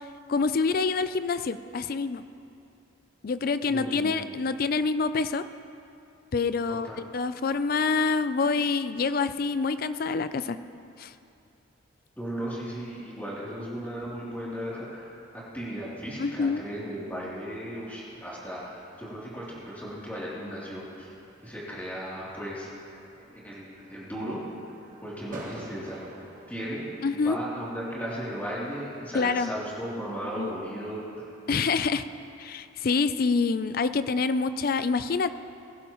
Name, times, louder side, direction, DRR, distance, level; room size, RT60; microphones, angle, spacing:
voice 1, 0.3-2.2 3.2-5.4 6.3-10.6 11.0-11.1 16.2-16.6 27.0-27.4 29.1-29.5 30.4-30.5 31.5-32.0 32.4-35.3, left 4 dB, 45° left, 12 dB, 0.4 m, -26 dB
voice 2, 3.7-4.4 6.7-7.0 12.2-15.2 15.5-21.1 21.4-22.7 23.4-24.4 25.0-26.0 26.5-26.8 27.1-31.2, equal, 10° left, -8 dB, 3.0 m, -36 dB
sound 1, 20.5-31.6, right 1 dB, 40° right, 1.3 m, -50 dB
21.0 x 11.5 x 3.0 m, 2.7 s
head